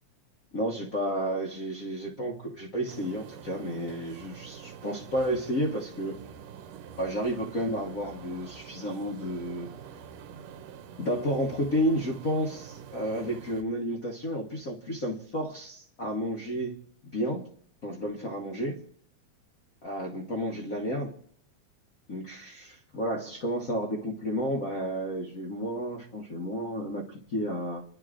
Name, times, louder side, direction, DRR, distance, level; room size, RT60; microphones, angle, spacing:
voice 1, 0.5-6.2 7.0-9.7 11.0-16.7 17.0-17.5 17.8-18.8 19.8-21.1 22.1-27.8, equal, 85° left, 1 dB, 0.7 m, -31 dB
sound 1, 2.9-13.6, right 7 dB, 75° right, 1.8 m, -46 dB
29.5 x 11.0 x 2.5 m, 0.62 s
omnidirectional pair, 3.3 m